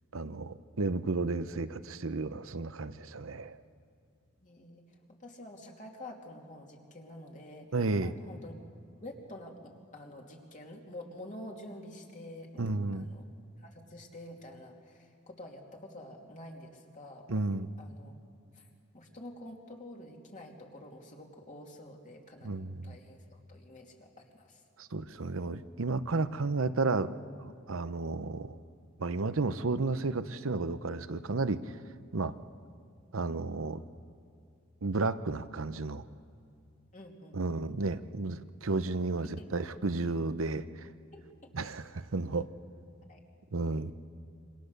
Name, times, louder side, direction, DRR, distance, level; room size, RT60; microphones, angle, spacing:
voice 1, 0.1-3.6 7.7-8.1 12.6-13.1 17.3-17.7 22.4-22.9 24.8-27.1 27.4-28.6 29.0-31.8 32.1-32.4 33.1-33.8 34.8-36.0 37.3-40.9 41.5-42.5 43.5-43.9, right 3 dB, 80° right, 12 dB, 0.8 m, -32 dB
voice 2, 4.4-4.8 5.1-8.6 9.0-12.6 12.9-13.2 13.6-17.4 17.8-18.1 18.5-18.7 18.9-24.6 36.9-37.4 39.2-39.5 41.1-41.2 43.1-43.2, left 1 dB, 40° left, 0 dB, 3.0 m, -48 dB
27.5 x 25.0 x 6.8 m, 2.3 s
head